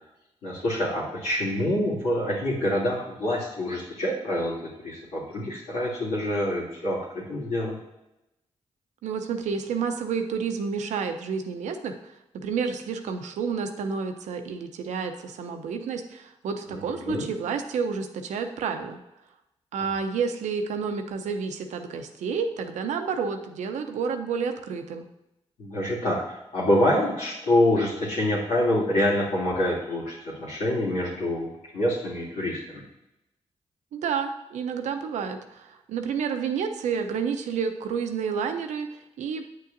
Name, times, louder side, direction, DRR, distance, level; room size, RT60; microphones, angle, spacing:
voice 1, 0.4-7.8 16.7-17.3 25.6-31.5 31.7-32.8, left 1 dB, 90° left, -6 dB, 2.8 m, -26 dB
voice 2, 9.0-19.0 19.7-25.1 33.9-38.9 39.2-39.4, right 6 dB, 90° right, 6 dB, 0.7 m, -30 dB
8.3 x 6.6 x 2.6 m, 0.91 s
cardioid pair, 55°, 12 cm